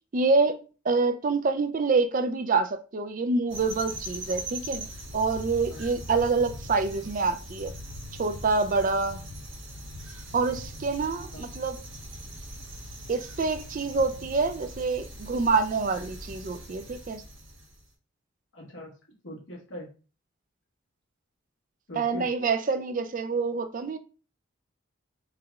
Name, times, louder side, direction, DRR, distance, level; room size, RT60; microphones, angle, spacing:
voice 1, 0.1-0.6 0.8-4.9 5.1-7.7 8.2-9.2 10.3-11.8 13.1-17.2 22.0-24.0, right 4 dB, 40° right, 0.4 m, -26 dB
sound 1, 3.5-17.8, right 1 dB, 65° right, 1.6 m, -41 dB
voice 2, 11.2-11.5 18.5-18.9 19.2-19.9 21.9-22.3, equal, 70° left, 1.4 m, -41 dB
4.9 x 2.4 x 3.1 m
head